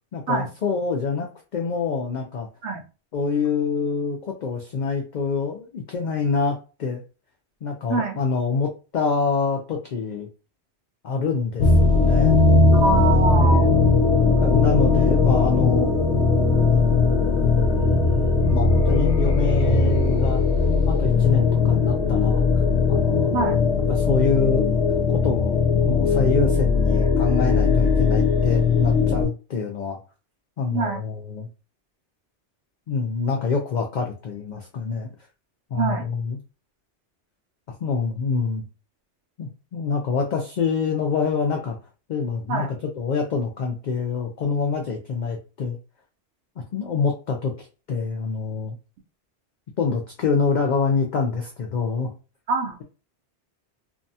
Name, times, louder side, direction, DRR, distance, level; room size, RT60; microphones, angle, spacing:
voice 1, 0.1-2.5 3.1-7.0 7.6-10.3 11.0-12.4 13.3-13.9 14.4-15.9 16.7-20.4 20.9-22.4 22.9-23.4 23.9-24.7 25.1-30.0 30.6-31.5 32.9-35.1 35.7-36.4 37.8-38.6 39.4-41.8 42.1-42.7 43.0-45.8 46.6-48.7 49.8-52.1, left 5 dB, 60° left, 2 dB, 0.5 m, -26 dB
sound 1, 11.6-29.3, left 4 dB, 80° left, 0.9 m, -19 dB
voice 2, 12.7-13.7 23.3-23.6 30.7-31.0 35.7-36.1 42.5-42.7 52.5-52.8, right 3 dB, 85° right, 4 dB, 0.9 m, -24 dB
2.6 x 2.2 x 2.6 m, 0.33 s
omnidirectional pair, 1.2 m